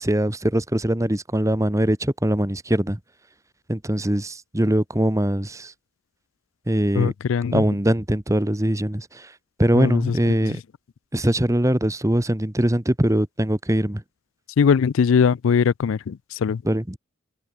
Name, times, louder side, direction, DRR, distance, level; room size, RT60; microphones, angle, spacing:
voice 1, 0.0-3.0 3.7-5.7 6.7-7.1 7.5-9.3 9.6-10.6 11.1-14.0 16.6-17.0, right 1 dB, 15° right, 1.2 m, -22 dB
voice 2, 6.9-7.6 9.7-10.2 10.4-10.5 14.6-16.6, left 6 dB, 80° left, 0.4 m, -21 dB
open air
head